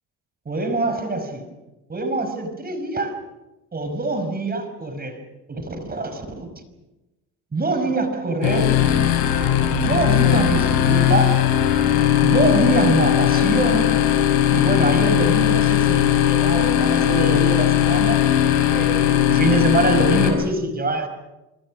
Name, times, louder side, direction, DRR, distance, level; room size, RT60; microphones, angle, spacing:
voice 1, 0.5-1.5 1.9-3.2 3.7-5.2 5.5-6.5 7.5-8.8 9.7-11.4 12.2-14.0 14.5-18.3 18.7-21.1, right 2 dB, 25° right, 8 dB, 5.3 m, -24 dB
sound 1, 8.4-20.3, left 11 dB, 90° left, 5.8 m, -18 dB
26.0 x 25.5 x 6.3 m, 1.1 s
supercardioid pair, 85°, 33 cm